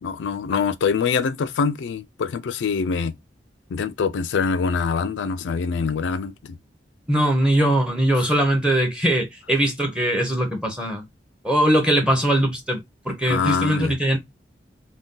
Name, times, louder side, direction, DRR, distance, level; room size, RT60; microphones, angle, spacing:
voice 1, 0.0-3.1 3.7-6.6 8.2-8.3 13.3-14.0, left 5 dB, 85° left, 0.4 m, -24 dB
voice 2, 7.1-11.0 11.4-14.2, right 1 dB, 5° right, 0.6 m, -21 dB
2.6 x 2.2 x 3.6 m
head